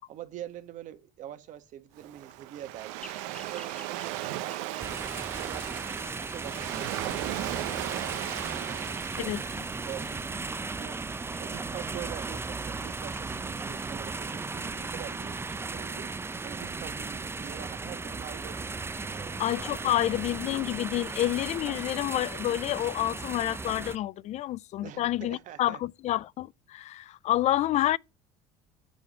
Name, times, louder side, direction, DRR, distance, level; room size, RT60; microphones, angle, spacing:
voice 1, 0.1-6.0 6.3-9.4 9.8-11.0 11.4-19.4 19.8-20.3 24.8-25.8, right 11 dB, 60° right, 1.5 m, -45 dB
Waves surf, 2.0-10.2, right 16 dB, 80° right, 0.8 m, -37 dB
sound 1, 3.0-15.6, left 1 dB, 5° left, 1.5 m, -54 dB
sound 2, 4.8-24.0, right 4 dB, 15° right, 0.6 m, -36 dB
voice 2, 19.4-28.0, left 14 dB, 50° left, 0.4 m, -29 dB
7.0 x 5.2 x 7.2 m
hypercardioid pair, 75°, 15 cm